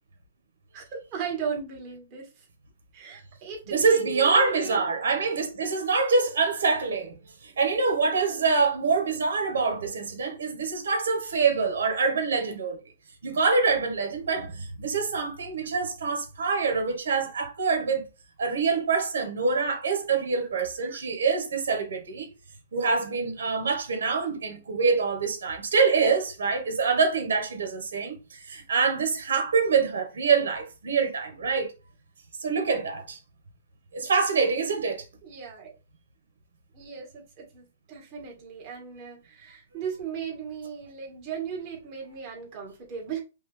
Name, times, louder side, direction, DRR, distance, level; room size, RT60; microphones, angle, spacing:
voice 1, 0.7-2.5 2.9-4.9 8.3-8.4 20.8-21.0 35.2-35.7 36.7-43.2, right 6 dB, 30° right, 1.9 m, -37 dB
voice 2, 3.7-12.8 13.2-18.1 18.4-22.3 22.7-31.7 32.4-33.2 33.9-35.0, right 4 dB, 85° right, 1.6 m, -25 dB
5.5 x 2.7 x 3.4 m
hypercardioid pair, 160°, 0 cm